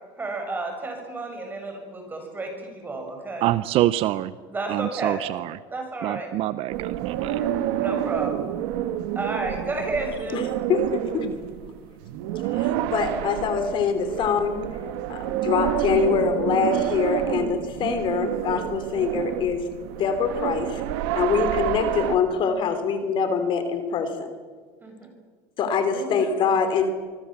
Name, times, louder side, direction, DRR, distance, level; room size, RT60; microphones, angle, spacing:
voice 1, 0.2-3.4 4.5-5.2 5.7-6.3 7.2-8.5 9.1-10.4 24.8-25.1 25.9-26.2 26.5-26.6, right 2 dB, 15° right, 3 dB, 7.1 m, -32 dB
voice 2, 3.4-4.3 4.7-5.6 6.0-7.4, right 14 dB, 50° right, 16 dB, 0.7 m, -25 dB
sound 1, 6.7-22.2, right 12 dB, 80° right, 1.5 m, -28 dB
voice 3, 10.7-11.3 12.5-14.6 15.1-19.6 20.0-20.8 21.1-24.3 25.6-26.9, left 6 dB, 45° left, 9 dB, 3.0 m, -24 dB
24.5 x 23.5 x 7.5 m, 1.5 s
cardioid pair, 140°, 12 cm